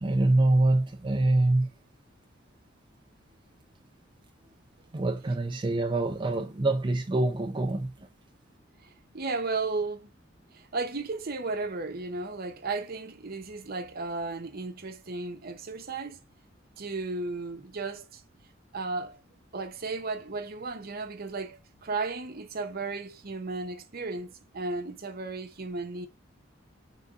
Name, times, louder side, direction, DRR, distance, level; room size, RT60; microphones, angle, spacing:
voice 1, 0.0-1.7 4.9-8.1, right 2 dB, 25° right, 0.5 m, -25 dB
voice 2, 8.8-10.1 10.5-16.2 16.8-18.2 18.7-19.2 19.5-26.1, right 3 dB, 50° right, 0.8 m, -34 dB
5.2 x 3.9 x 2.5 m
head